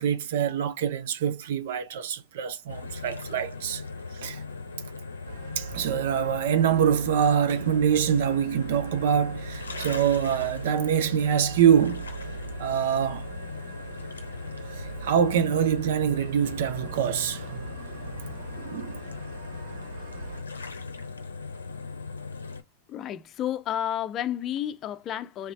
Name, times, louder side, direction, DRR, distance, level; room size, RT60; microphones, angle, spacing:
voice 1, 0.0-3.8 4.1-4.4 5.6-12.1 12.6-13.3 14.8-18.1 18.5-19.0, right 8 dB, 65° right, 0.6 m, -25 dB
sound 1, 2.7-22.6, left 4 dB, 85° left, 0.6 m, -39 dB
sound 2, 5.2-20.4, right 7 dB, 85° right, 1.8 m, -42 dB
voice 2, 22.9-25.5, left 11 dB, 35° left, 0.5 m, -31 dB
3.2 x 3.1 x 2.5 m
figure-of-eight pair, 95°, 0 cm